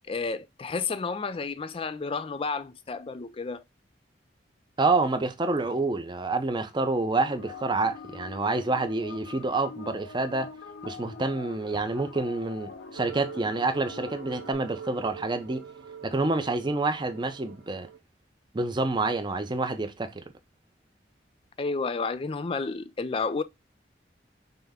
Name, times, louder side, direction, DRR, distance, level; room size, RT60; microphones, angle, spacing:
voice 1, 0.1-3.6 21.6-23.4, left 4 dB, 30° left, 0.4 m, -31 dB
voice 2, 4.8-10.5 10.8-15.6 16.0-17.9 18.5-20.2, right 3 dB, 25° right, 0.6 m, -28 dB
sound 1, 7.2-14.5, left 4 dB, 85° left, 0.7 m, -44 dB
sound 2, 12.9-18.0, right 6 dB, 75° right, 0.7 m, -44 dB
5.7 x 2.1 x 3.5 m
head